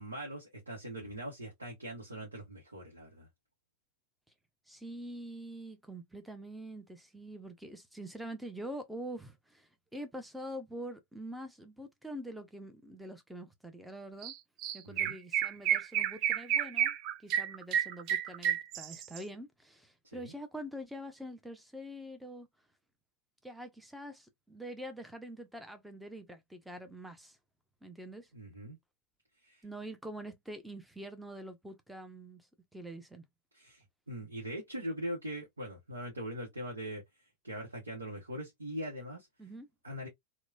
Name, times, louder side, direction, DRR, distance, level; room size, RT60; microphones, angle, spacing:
voice 1, 0.0-3.3 14.8-15.2 20.0-20.3 28.3-28.8 29.4-29.6 33.5-37.0 37.4-39.3 39.8-40.1, equal, 75° right, 0.8 m, -41 dB
voice 2, 4.7-14.3 14.7-17.0 17.2-22.5 23.4-27.4 27.8-28.3 29.6-32.4 32.7-33.2 39.4-39.7, right 1 dB, 5° right, 0.6 m, -45 dB
Chirp tweet, 14.2-14.3 14.6-19.2, right 10 dB, 40° right, 0.3 m, -31 dB
3.0 x 2.1 x 2.2 m
figure-of-eight pair, 90°, 0 cm